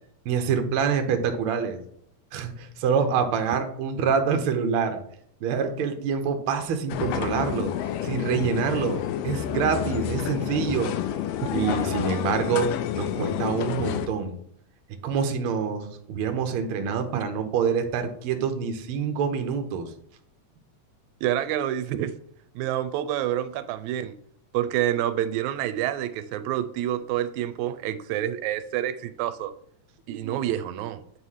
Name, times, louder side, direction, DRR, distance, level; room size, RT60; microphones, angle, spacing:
voice 1, 0.2-1.8 2.3-5.0 5.4-7.7 8.0-10.9 11.5-14.3 15.0-19.8 30.1-30.3, right 6 dB, 65° right, 6 dB, 1.4 m, -26 dB
sound 1, 6.9-14.1, left 10 dB, 80° left, 1.5 m, -29 dB
voice 2, 21.2-22.1 22.6-24.2 24.5-29.5 30.1-31.0, right 12 dB, 85° right, 11 dB, 1.9 m, -28 dB
8.9 x 3.2 x 5.6 m, 0.65 s
omnidirectional pair, 3.3 m